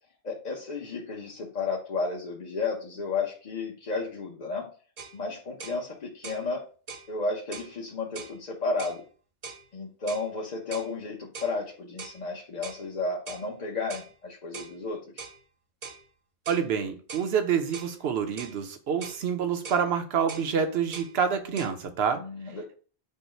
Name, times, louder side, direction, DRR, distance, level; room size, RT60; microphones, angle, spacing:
voice 1, 0.2-4.7 5.1-6.6 7.1-9.0 9.7-15.2 22.2-22.8, left 3 dB, 45° left, 0.8 m, -33 dB
sound 1, 5.0-5.2 5.6-5.8 6.2-6.5 6.9-7.1 7.5-7.7 8.2-8.4 8.8-9.0 9.4-9.6 10.1-10.3 10.7-10.9 11.3-11.6 12.0-12.2 12.6-12.8 13.3-13.5 13.9-14.1 14.5-14.8 15.2-15.4 15.8-16.0 16.5-16.7 17.1-17.3 17.7-17.9 18.4-18.6 19.0-19.2 19.6-19.9 20.3-20.5 20.9-21.1 21.6-21.7, right 5 dB, 45° right, 0.6 m, -41 dB
voice 2, 16.5-22.2, right 7 dB, 75° right, 0.9 m, -27 dB
5.4 x 2.0 x 4.3 m
omnidirectional pair, 1.1 m